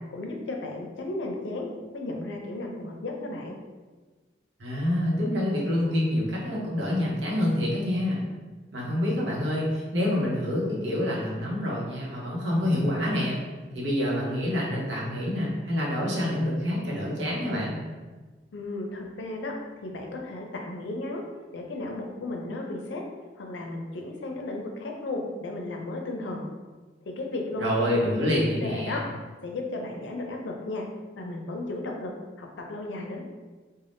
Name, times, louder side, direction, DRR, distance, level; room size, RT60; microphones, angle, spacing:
voice 1, 0.1-1.7 1.9-3.5 18.5-19.5 19.8-21.2 21.5-23.0 23.4-26.5 27.0-29.0 29.4-30.8 31.2-32.1 32.4-33.2, left 2 dB, 85° left, 1 dB, 0.5 m, -34 dB
voice 2, 4.6-8.2 8.7-13.4 13.7-17.8 27.6-29.0, left 1 dB, 80° right, -4 dB, 0.8 m, -27 dB
3.4 x 2.1 x 2.6 m, 1.3 s
head